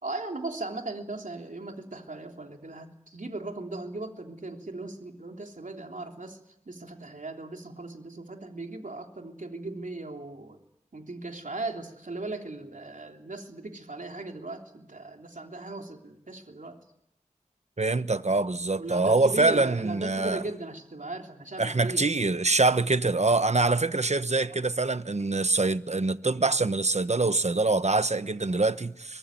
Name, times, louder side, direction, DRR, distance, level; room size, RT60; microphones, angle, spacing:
voice 1, 0.0-6.4 6.7-10.6 10.9-16.8 18.8-22.1, right 2 dB, 85° right, 3.4 m, -37 dB
voice 2, 17.8-20.4 21.6-29.2, right 3 dB, 60° right, 1.1 m, -24 dB
24.0 x 19.0 x 9.4 m
wide cardioid pair, 50°, 13 cm